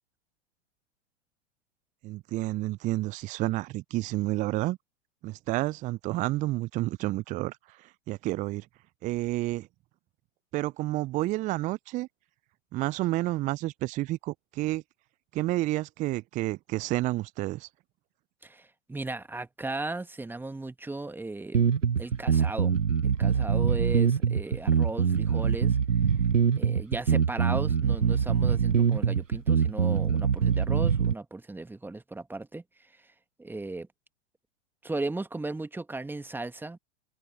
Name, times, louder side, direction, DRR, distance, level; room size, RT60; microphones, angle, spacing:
voice 1, 2.0-4.8 5.2-8.7 9.0-9.7 10.5-12.1 12.7-14.8 15.3-17.7, right 18 dB, 20° right, 0.5 m, -30 dB
voice 2, 18.4-21.7 22.0-25.8 26.6-32.6 33.4-33.9 34.8-36.8, right 2 dB, 5° right, 1.5 m, -36 dB
sound 1, 21.5-31.1, right 7 dB, 85° right, 1.1 m, -24 dB
open air
figure-of-eight pair, 100°, 37 cm